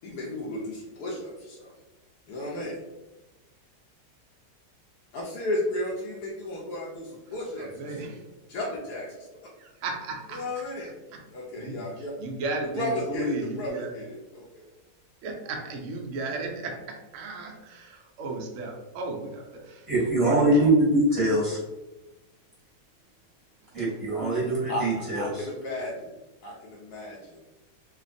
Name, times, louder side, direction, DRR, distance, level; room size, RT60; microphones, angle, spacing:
voice 1, 0.0-1.7 2.3-2.8 5.1-8.2 8.5-9.3 10.3-10.9 11.3-12.1 12.8-14.7 24.7-26.1 26.4-27.4, left 1 dB, 70° left, -5 dB, 1.1 m, -34 dB
voice 2, 7.6-8.2 9.6-11.2 11.5-13.9 15.2-20.7 24.2-24.4, right 2 dB, 85° right, 1 dB, 0.6 m, -35 dB
voice 3, 19.9-21.6 23.7-25.5, right 1 dB, 25° right, -9 dB, 1.0 m, -23 dB
3.2 x 2.2 x 2.5 m, 1.1 s
omnidirectional pair, 1.9 m